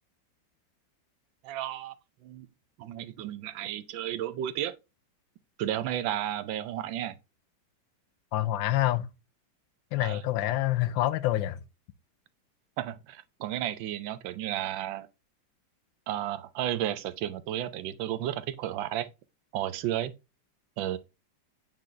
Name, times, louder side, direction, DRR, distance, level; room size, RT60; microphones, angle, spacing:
voice 1, 1.4-1.9 2.2-2.5 2.8-4.7 5.6-7.1 10.0-10.2 12.8-15.1 16.1-19.1 19.5-20.1 20.8-21.0, right 12 dB, 85° right, 1.4 m, -33 dB
voice 2, 8.3-9.1 9.9-11.6, left 14 dB, 85° left, 1.4 m, -27 dB
8.8 x 3.9 x 3.2 m
omnidirectional pair, 2.0 m